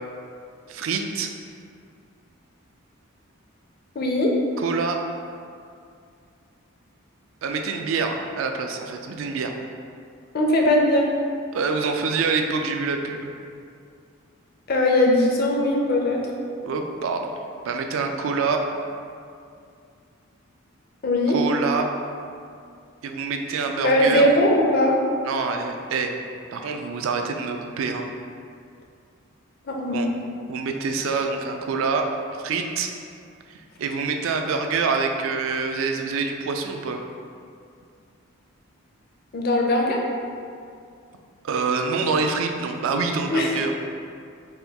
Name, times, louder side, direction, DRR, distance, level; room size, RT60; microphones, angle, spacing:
voice 1, 0.7-1.3 4.6-5.0 7.4-9.5 11.5-13.3 16.6-17.3 17.6-18.6 21.3-21.9 23.0-24.3 25.2-26.1 26.5-28.1 29.9-30.1 30.5-32.1 32.4-32.9 33.8-37.0 41.4-43.7, right 4 dB, 65° right, 4 dB, 0.3 m, -26 dB
voice 2, 4.0-4.3 10.3-11.1 14.7-16.2 21.0-21.4 23.8-24.9 29.7-30.0 39.3-40.0 43.3-43.5, left 1 dB, 45° left, 0 dB, 0.4 m, -20 dB
4.2 x 2.2 x 3.4 m, 2.4 s
head